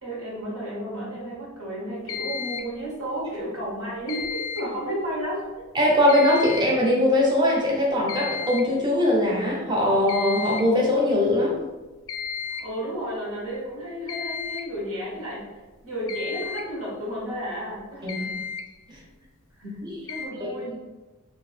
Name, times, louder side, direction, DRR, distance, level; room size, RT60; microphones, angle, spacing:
voice 1, 0.0-5.5 12.6-18.4 19.5-19.8 20.1-20.7, right 1 dB, 85° right, -5 dB, 1.3 m, -33 dB
sound 1, 2.1-2.8 4.1-4.8 6.1-6.8 8.1-8.8 10.1-10.8 12.1-12.8 14.1-14.8 16.1-16.7 17.8-17.9 18.1-18.7 20.1-20.3, left 6 dB, 60° left, 0.3 m, -33 dB
voice 2, 5.7-11.6 18.0-18.4 18.9-19.0 19.6-20.1 20.4-20.9, left 1 dB, 20° right, -2 dB, 0.7 m, -22 dB
2.6 x 2.6 x 3.2 m, 1.2 s
head